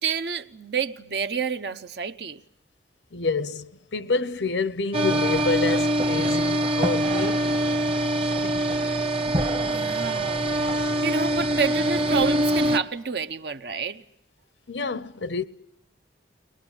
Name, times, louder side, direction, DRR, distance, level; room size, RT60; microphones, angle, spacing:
voice 1, 0.0-2.4 9.6-14.0, right 6 dB, 65° right, 0.9 m, -29 dB
voice 2, 3.1-7.6 8.4-8.7 14.7-15.4, left 3 dB, 85° left, 0.8 m, -28 dB
sound 1, 4.9-12.8, right 1 dB, 30° right, 1.0 m, -24 dB
23.0 x 20.0 x 9.7 m
head